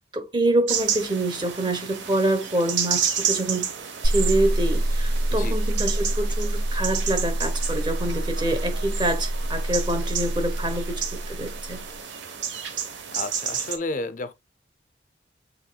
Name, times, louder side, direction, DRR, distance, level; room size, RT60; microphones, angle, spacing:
voice 1, 0.1-3.7 4.0-11.8, right 1 dB, 25° right, 0.9 m, -26 dB
sound 1, 0.7-13.8, right 7 dB, 80° right, 0.9 m, -31 dB
sound 2, 4.0-11.8, right 1 dB, 55° right, 0.8 m, -26 dB
voice 2, 13.1-14.3, left 2 dB, 45° left, 0.5 m, -32 dB
7.1 x 3.3 x 2.2 m
head